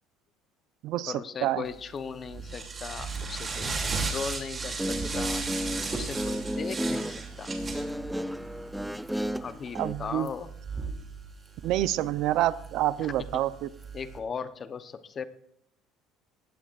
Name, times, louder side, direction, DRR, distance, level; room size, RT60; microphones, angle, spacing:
voice 1, 1.1-5.4 5.9-7.5 9.4-10.5 13.0-13.1 13.9-15.3, left 6 dB, 30° left, 12 dB, 0.9 m, -38 dB
sound 1, 1.8-14.2, right 4 dB, 25° right, 2.7 m, -36 dB
Guitar, 4.6-9.9, equal, ahead, 0.4 m, -33 dB
voice 2, 9.7-10.3 11.6-13.7, right 14 dB, 65° right, 15 dB, 0.7 m, -27 dB
18.5 x 16.0 x 2.5 m, 0.74 s
cardioid pair, 130°, 0 cm